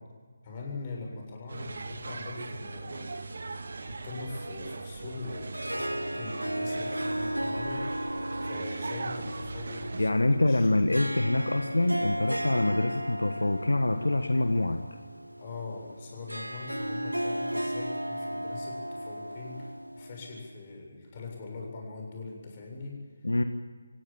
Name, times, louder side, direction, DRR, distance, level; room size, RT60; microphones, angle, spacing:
voice 1, 0.4-10.7 15.4-23.0, left 3 dB, 30° left, 0 dB, 7.6 m, -42 dB
sound 1, 1.5-10.1, right 3 dB, 55° right, 1.5 m, -40 dB
Harp, 5.2-20.5, right 1 dB, 90° right, 1.0 m, -35 dB
sound 2, 7.1-12.4, right 2 dB, 75° right, 1.5 m, -44 dB
voice 2, 10.0-14.8 23.2-23.4, left 2 dB, 75° left, 7 dB, 1.5 m, -25 dB
27.5 x 17.0 x 9.0 m, 1.6 s
figure-of-eight pair, 155°, 0 cm